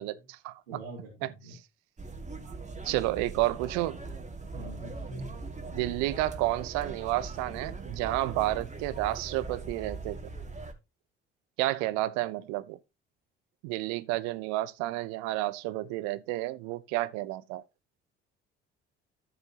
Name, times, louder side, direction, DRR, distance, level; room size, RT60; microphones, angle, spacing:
voice 1, 0.0-0.8 1.2-1.6 2.4-2.5 2.8-4.0 5.7-10.2 11.6-12.8 13.6-17.6, right 17 dB, 70° right, 0.9 m, -31 dB
voice 2, 0.7-1.5 4.5-5.3, right 1 dB, 90° right, 3.3 m, -43 dB
sound 1, 2.0-10.7, right 3 dB, 25° right, 2.3 m, -40 dB
13.5 x 7.0 x 2.9 m
hypercardioid pair, 50°, 29 cm